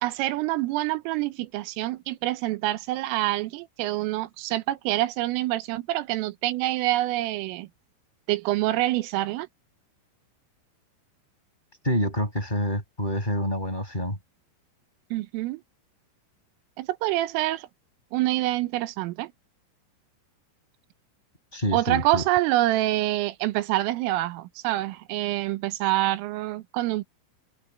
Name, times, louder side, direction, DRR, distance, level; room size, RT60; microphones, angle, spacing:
voice 1, 0.0-7.7 8.3-9.5 15.1-15.6 16.8-17.7 18.1-19.3 21.7-27.0, right 16 dB, 90° right, 3.5 m, -26 dB
voice 2, 11.8-14.2 21.5-22.2, equal, 10° left, 7.8 m, -27 dB
omnidirectional pair, 5.8 m